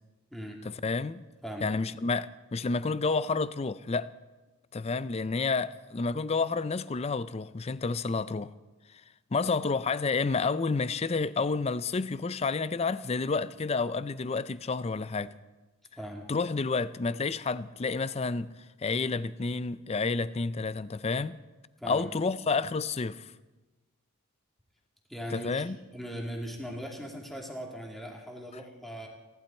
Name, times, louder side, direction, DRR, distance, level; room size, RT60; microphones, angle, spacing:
voice 1, 0.6-1.2 1.6-4.1 4.7-8.5 9.3-15.3 16.3-18.5 18.8-21.4 21.8-23.3 25.3-25.8, left 4 dB, 30° left, 0.4 m, -30 dB
voice 2, 16.0-16.3 21.8-22.1 25.1-25.6 25.9-29.1, equal, ahead, 2.4 m, -39 dB
27.0 x 12.0 x 4.4 m
head